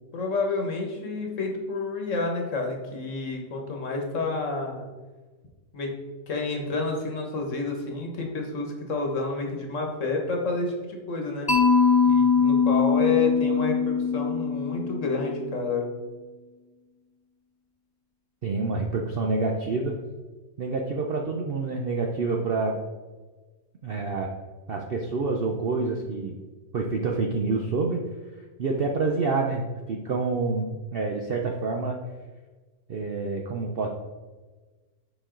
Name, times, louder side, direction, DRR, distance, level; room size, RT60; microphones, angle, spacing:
voice 1, 0.1-4.8 5.7-6.0 6.3-11.6 12.0-15.9, left 3 dB, 55° left, 2 dB, 1.4 m, -29 dB
Mallet percussion, 11.5-15.5, left 5 dB, 20° left, 0.8 m, -22 dB
voice 2, 18.4-20.0 20.6-22.8 23.8-24.3 24.7-26.4 26.7-28.0 28.6-32.0 32.9-33.9, right 3 dB, 60° right, 2 dB, 0.6 m, -27 dB
7.0 x 5.3 x 3.8 m, 1.3 s
omnidirectional pair, 1.6 m